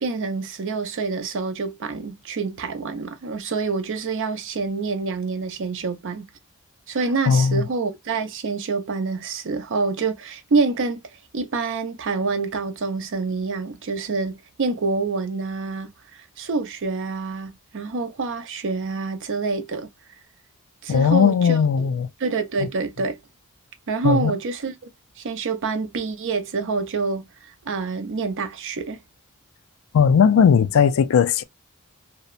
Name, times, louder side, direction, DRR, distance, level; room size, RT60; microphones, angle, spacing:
voice 1, 0.0-6.2 6.9-11.0 11.3-19.9 20.8-21.9 22.2-23.2 23.9-24.7 25.2-29.0, right 4 dB, 60° right, 0.6 m, -27 dB
voice 2, 7.3-7.6 20.9-22.1 24.0-24.3 29.9-31.4, left 6 dB, 65° left, 0.3 m, -17 dB
2.7 x 2.1 x 2.2 m
head